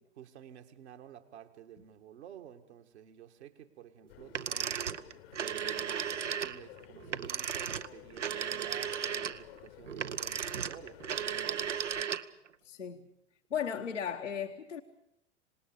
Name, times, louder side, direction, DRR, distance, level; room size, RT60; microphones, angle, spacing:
voice 1, 0.2-4.9 5.4-11.7, right 10 dB, 65° right, 5 dB, 1.9 m, -51 dB
sound 1, 4.1-12.0, left 14 dB, 55° left, 1.1 m, -54 dB
sound 2, 4.3-12.5, right 8 dB, 80° right, 0.8 m, -35 dB
voice 2, 12.6-13.1 13.5-14.8, left 8 dB, 80° left, 3 dB, 1.2 m, -36 dB
26.5 x 19.0 x 6.8 m, 0.79 s
figure-of-eight pair, 90°, 36 cm